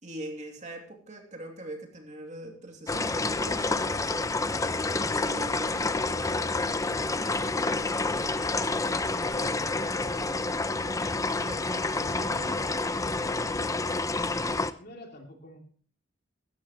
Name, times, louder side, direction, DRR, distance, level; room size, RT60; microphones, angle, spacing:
voice 1, 0.0-3.8 4.9-5.7 11.0-12.6, right 2 dB, 35° right, 2 dB, 2.7 m, -42 dB
sound 1, 2.9-14.7, left 3 dB, 15° left, 0.5 m, -29 dB
voice 2, 14.8-15.6, left 1 dB, 50° left, 3 dB, 2.8 m, -49 dB
17.0 x 12.5 x 3.0 m, 0.42 s
head